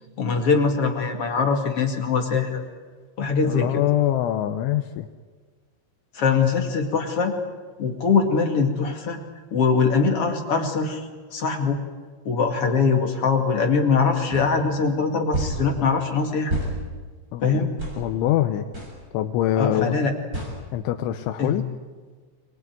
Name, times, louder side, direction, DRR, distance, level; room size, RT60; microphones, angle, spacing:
voice 1, 0.2-2.6 3.2-3.8 6.1-7.4 7.8-9.2 9.5-11.8 12.2-16.6 17.4-17.7 19.6-20.1 21.4-21.6, left 5 dB, 45° left, 4 dB, 2.2 m, -22 dB
voice 2, 3.4-5.1 17.3-17.7 18.0-18.7 19.1-20.0 20.7-21.6, left 12 dB, 85° left, 8 dB, 3.3 m, -24 dB
sound 1, 14.3-14.5 15.3-15.6 16.5-16.7 17.8-18.0 18.7-18.9 20.3-20.5, right 1 dB, 20° right, 6.8 m, -28 dB
25.0 x 20.5 x 9.3 m, 1.4 s
omnidirectional pair, 5.3 m